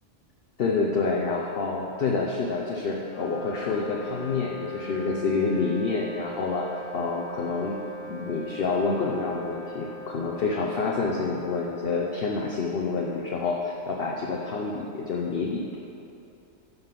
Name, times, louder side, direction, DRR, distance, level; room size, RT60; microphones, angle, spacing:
voice 1, 0.6-7.8 8.1-15.8, left 4 dB, 55° left, -1 dB, 0.9 m, -28 dB
Wind instrument woodwind instrument, 3.0-12.6, left 1 dB, 30° left, 0.6 m, -41 dB
10.5 x 5.6 x 5.9 m, 2.8 s
omnidirectional pair, 1.3 m